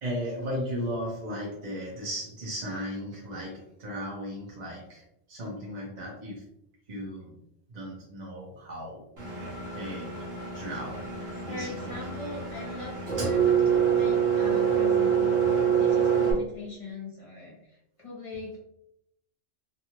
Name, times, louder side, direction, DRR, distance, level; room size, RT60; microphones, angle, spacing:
voice 1, 0.0-6.4 6.9-7.4 7.7-10.2 10.5-11.0 11.4-11.9, equal, 40° right, -4 dB, 0.8 m, -36 dB
Engine, 9.2-16.3, right 7 dB, 60° right, 1.1 m, -26 dB
voice 2, 11.5-18.6, left 2 dB, 30° left, -4 dB, 0.8 m, -41 dB
2.6 x 2.5 x 2.9 m, 0.79 s
omnidirectional pair, 1.2 m